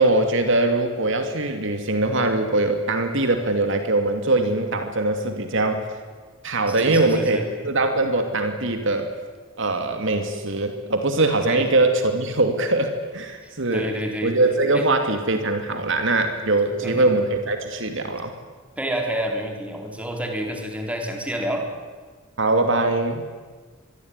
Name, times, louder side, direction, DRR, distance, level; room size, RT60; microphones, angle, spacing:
voice 1, 0.0-5.9 6.4-9.1 9.6-13.9 14.2-18.3 22.4-23.2, right 2 dB, 60° right, 6 dB, 2.6 m, -22 dB
voice 2, 6.7-7.5 11.5-11.7 13.4-14.3 14.7-14.9 16.8-17.1 18.8-21.7, equal, 5° right, 2 dB, 4.1 m, -29 dB
25.5 x 22.5 x 9.8 m, 1.4 s
head